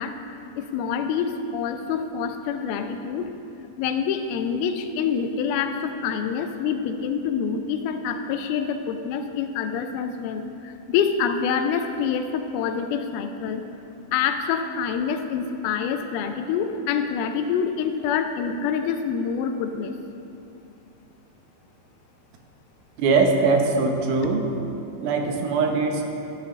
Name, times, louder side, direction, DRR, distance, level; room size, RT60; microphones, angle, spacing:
voice 1, 0.0-3.3 3.8-13.6 14.1-20.0, left 7 dB, 85° left, 7 dB, 2.5 m, -26 dB
voice 2, 23.0-24.5 25.0-26.1, right 4 dB, 80° right, 3 dB, 2.9 m, -21 dB
13.5 x 12.0 x 3.2 m, 2.7 s
omnidirectional pair, 4.4 m